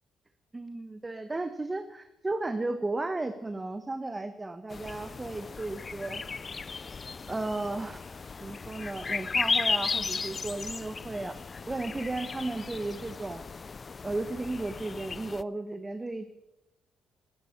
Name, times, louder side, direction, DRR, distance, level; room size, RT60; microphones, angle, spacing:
voice 1, 0.5-6.2 7.3-8.0 8.4-11.4 11.7-13.4 14.0-16.3, right 2 dB, 20° right, 9 dB, 1.1 m, -34 dB
sound 1, 4.7-15.4, left 4 dB, 35° left, 0.4 m, -35 dB
17.5 x 13.0 x 5.9 m, 0.97 s
cardioid pair, 90°, 0 cm